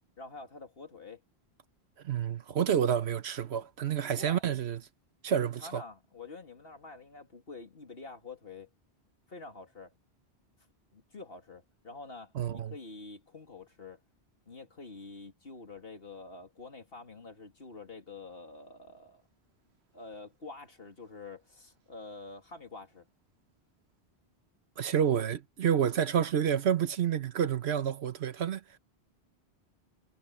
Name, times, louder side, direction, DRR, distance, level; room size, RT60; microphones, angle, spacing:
voice 1, 0.2-1.2 4.2-4.4 5.4-8.7 9.3-9.9 10.9-14.0 14.5-19.2 19.9-23.0, left 3 dB, 60° left, 2.9 m, -47 dB
voice 2, 2.0-4.8 5.2-5.8 12.3-12.7 24.8-28.6, right 8 dB, 75° right, 1.2 m, -29 dB
omnidirectional pair, 1.1 m